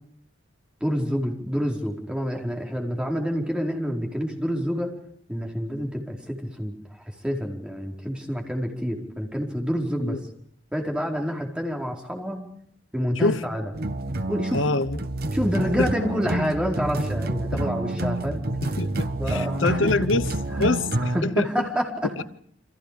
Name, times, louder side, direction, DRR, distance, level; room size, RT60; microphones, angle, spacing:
voice 1, 0.8-5.0 5.3-6.7 7.2-10.2 10.7-12.4 12.9-13.7 14.3-14.6 15.3-18.4 19.2-20.1 20.5-22.1, equal, 5° right, 4.7 m, -28 dB
sound 1, 13.7-21.2, right 1 dB, 55° right, 1.6 m, -28 dB
voice 2, 14.5-15.0 15.8-15.9 17.5-17.6 18.8-20.3 20.6-21.5 22.2-22.3, left 3 dB, 80° left, 0.9 m, -25 dB
29.0 x 26.0 x 5.1 m
head